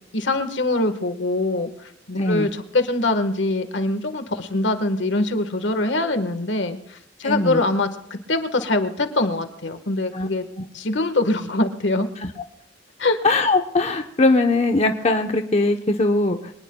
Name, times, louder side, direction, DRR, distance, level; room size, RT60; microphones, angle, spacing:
voice 1, 0.1-10.4 10.7-12.1 13.0-13.2, left 2 dB, 70° left, 8 dB, 1.5 m, -23 dB
voice 2, 2.1-2.5 7.2-7.6 10.1-10.3 10.6-10.7 12.2-12.3 13.2-16.5, left 2 dB, 35° left, 5 dB, 0.9 m, -20 dB
24.5 x 19.5 x 2.3 m, 0.77 s
head